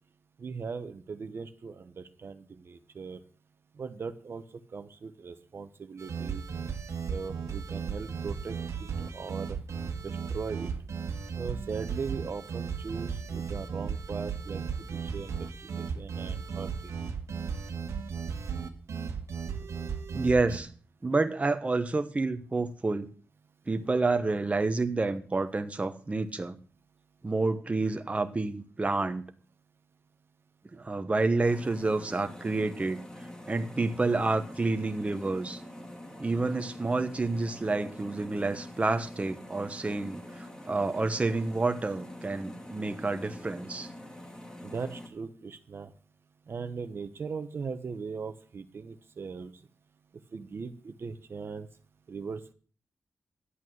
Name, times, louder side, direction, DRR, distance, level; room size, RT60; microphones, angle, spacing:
voice 1, 0.4-3.2 3.7-6.4 7.1-9.6 10.0-10.7 11.3-16.9 44.6-45.9 46.5-49.7 50.3-51.7 52.1-52.5, right 5 dB, 55° right, 9 dB, 1.0 m, -39 dB
sound 1, 6.0-20.6, right 6 dB, 85° right, 1.5 m, -35 dB
voice 2, 20.1-20.7 21.0-23.1 23.7-26.6 27.2-29.2 30.7-33.0 33.5-35.6 36.2-43.9, right 3 dB, 25° right, 8 dB, 1.0 m, -29 dB
sound 2, 31.4-45.1, left 1 dB, 15° left, 2.3 m, -45 dB
11.0 x 8.4 x 6.4 m, 0.41 s
wide cardioid pair, 95°, 5 cm